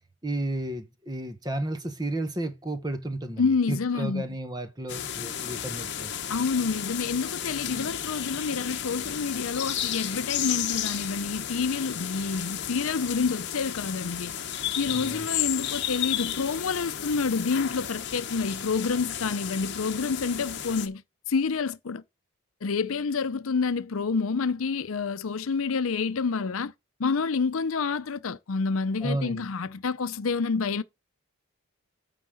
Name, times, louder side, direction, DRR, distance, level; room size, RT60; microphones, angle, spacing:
voice 1, 0.2-6.1 7.6-7.9 14.9-15.3 29.0-29.5, right 1 dB, 20° right, 1.0 m, -33 dB
voice 2, 3.4-4.2 6.3-14.3 14.8-22.0 22.6-26.7 27.0-30.8, left 4 dB, 75° left, 0.6 m, -28 dB
sound 1, 4.9-20.9, left 10 dB, 50° left, 0.9 m, -33 dB
9.4 x 3.8 x 6.3 m
head